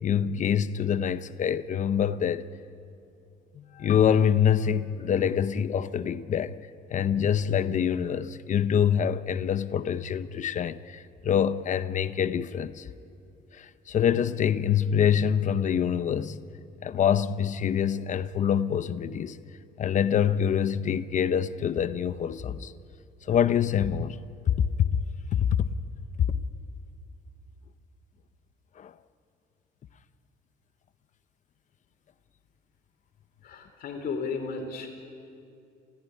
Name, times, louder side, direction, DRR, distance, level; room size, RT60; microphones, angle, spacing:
voice 1, 0.0-2.5 3.5-6.6 6.9-12.9 13.5-16.4 16.8-19.4 19.8-22.7 23.3-24.2 24.5-24.9 25.3-25.7 28.8-28.9, left 8 dB, 45° left, 0.9 m, -25 dB
voice 2, 33.4-34.9, left 4 dB, 60° left, 3.1 m, -34 dB
29.0 x 15.5 x 10.0 m
cardioid pair, 110°, 17 cm